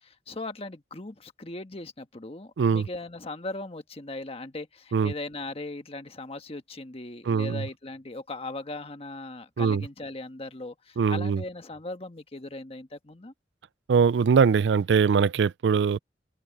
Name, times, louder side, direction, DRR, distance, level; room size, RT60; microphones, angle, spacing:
voice 1, 0.0-13.3, left 2 dB, 35° left, 1.4 m, -38 dB
voice 2, 2.6-2.9 4.9-5.1 7.3-7.7 9.6-9.8 11.0-11.4 13.9-16.0, right 6 dB, 80° right, 0.4 m, -22 dB
open air
head